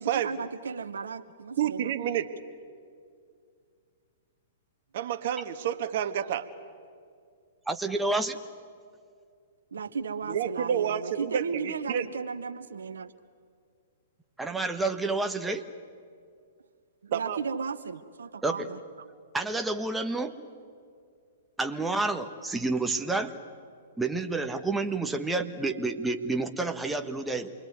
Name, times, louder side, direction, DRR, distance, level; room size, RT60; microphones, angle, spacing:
voice 1, 0.0-2.0 9.7-13.1 17.0-18.8, right 5 dB, 80° right, 9 dB, 0.9 m, -35 dB
voice 2, 1.6-2.3 4.9-6.5 10.3-12.1 17.1-17.4, right 9 dB, 55° right, 9 dB, 1.5 m, -29 dB
voice 3, 7.7-8.4 14.4-15.6 18.4-18.7 19.3-20.4 21.6-23.4 24.0-27.5, right 3 dB, 5° right, 5 dB, 1.3 m, -29 dB
27.5 x 22.0 x 9.4 m, 2.2 s
hypercardioid pair, 115°, 0 cm